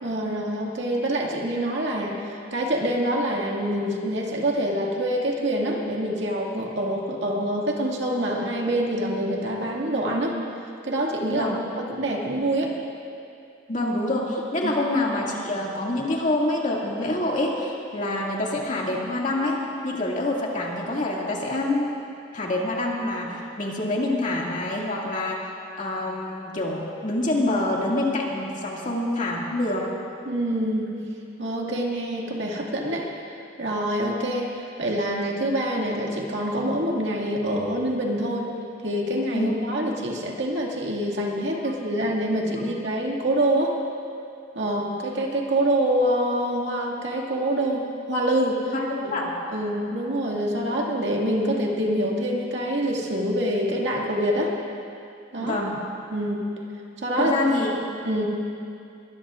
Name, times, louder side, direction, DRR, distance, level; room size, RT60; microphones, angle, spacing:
voice 1, 0.0-10.4 10.8-12.8 14.6-14.7 30.2-31.0 31.4-33.1 33.6-38.5 38.8-43.8 44.5-48.7 49.0-49.1 49.5-54.6 55.3-55.6 56.1-56.5 57.0-57.3 57.6-57.8 58.0-58.3, right 1 dB, 65° right, -2 dB, 2.1 m, -26 dB
voice 2, 13.7-21.9 22.3-25.4 25.8-29.9 39.3-39.5 48.7-49.3 55.4-55.8 57.2-57.7, left 1 dB, 40° left, -3 dB, 2.2 m, -26 dB
22.5 x 20.5 x 2.5 m, 2.5 s
head